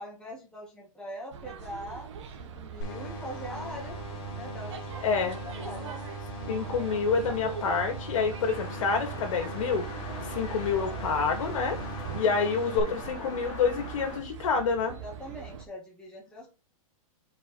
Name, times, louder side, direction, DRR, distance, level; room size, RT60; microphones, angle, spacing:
voice 1, 0.0-2.1 2.4-4.0 4.3-5.9 14.8-16.5, equal, 5° left, -3 dB, 1.8 m, -42 dB
sound 1, 1.3-15.6, right 7 dB, 55° right, 1.4 m, -42 dB
sound 2, 2.8-12.8, right 1 dB, 40° left, 2.6 m, -40 dB
voice 2, 5.0-5.4 6.5-9.8 10.3-11.8 12.1-14.9, left 5 dB, 65° left, 4 dB, 2.3 m, -28 dB
sound 3, 8.4-14.2, left 3 dB, 25° left, 2.4 m, -42 dB
5.0 x 4.9 x 4.7 m, 0.29 s
hypercardioid pair, 165°, 18 cm